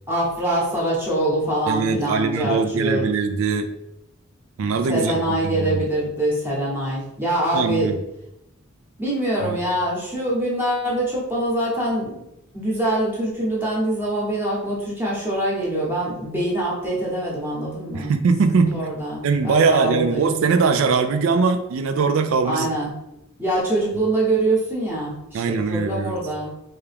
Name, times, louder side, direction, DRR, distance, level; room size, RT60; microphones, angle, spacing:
voice 1, 0.1-3.1 4.9-7.9 9.0-12.2 12.5-18.1 18.5-20.3 22.4-22.9 23.4-26.5, right 1 dB, 10° right, -6 dB, 0.9 m, -24 dB
voice 2, 1.7-3.7 4.6-5.8 7.5-8.0 9.4-9.6 17.9-18.9 19.2-22.7 25.3-26.2, right 4 dB, 70° right, 7 dB, 0.3 m, -21 dB
3.5 x 2.8 x 3.4 m, 0.88 s
head